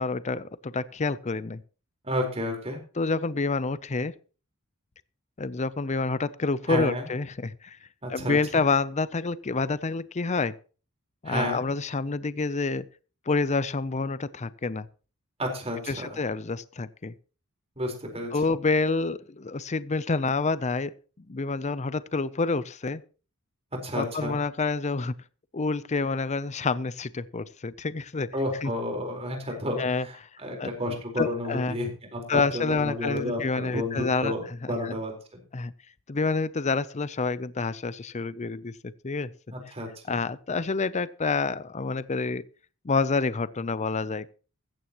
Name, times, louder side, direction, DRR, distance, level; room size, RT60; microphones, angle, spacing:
voice 1, 0.0-1.6 3.0-4.1 5.4-7.8 8.1-10.5 11.2-12.9 13.3-14.9 15.9-17.1 18.3-20.9 21.3-23.0 23.9-25.1 25.5-28.3 28.6-28.7 29.8-30.1 30.6-30.7 31.2-31.8 32.3-34.3 34.6-35.0 35.5-35.7 36.1-38.7 39.0-39.3 40.1-42.4 42.8-44.3, left 4 dB, 30° left, 0.6 m, -28 dB
voice 2, 2.0-2.8 6.7-7.1 8.0-8.6 11.2-11.6 15.4-16.2 17.8-18.3 23.8-24.4 28.3-34.4 34.7-35.4 39.5-40.2, left 1 dB, 30° right, 4.3 m, -31 dB
15.5 x 14.0 x 3.0 m
head